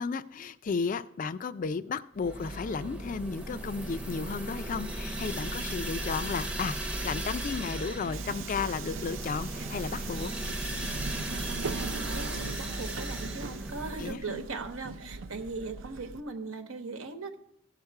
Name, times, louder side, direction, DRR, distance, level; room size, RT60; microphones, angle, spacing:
voice 1, 0.0-10.3 14.0-14.4, left 5 dB, 40° left, 14 dB, 0.3 m, -34 dB
sound 1, 2.2-14.1, right 1 dB, 5° right, 0.6 m, -36 dB
Subway metro underground, 7.5-16.2, right 4 dB, 65° right, 0.5 m, -40 dB
voice 2, 11.3-17.4, right 4 dB, 90° right, 7 dB, 1.1 m, -39 dB
16.0 x 6.6 x 4.7 m, 0.74 s
head